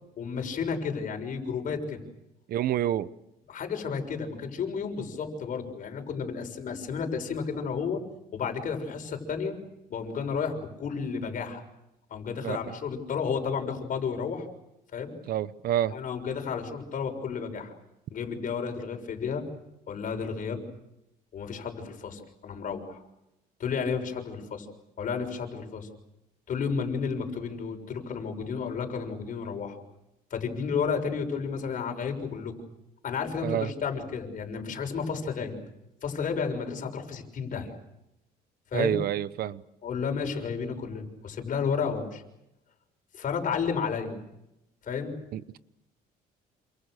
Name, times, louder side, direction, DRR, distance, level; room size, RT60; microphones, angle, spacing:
voice 1, 0.2-2.0 3.5-8.0 8.3-9.6 9.9-11.6 12.1-14.5 14.9-15.1 15.9-17.7 18.1-19.4 19.9-20.6 21.3-23.0 23.6-24.7 25.0-25.9 26.5-29.8 30.3-32.5 33.0-35.6 36.0-37.7 38.7-39.0 39.8-42.2 43.1-44.2 44.8-45.2, left 6 dB, 50° left, 4 dB, 6.7 m, -32 dB
voice 2, 2.5-3.1 12.4-12.6 15.3-16.0 33.4-33.7 38.7-39.6 45.3-45.6, right 11 dB, 65° right, 16 dB, 1.0 m, -28 dB
29.0 x 28.0 x 6.6 m, 0.87 s
cardioid pair, 110°, 17 cm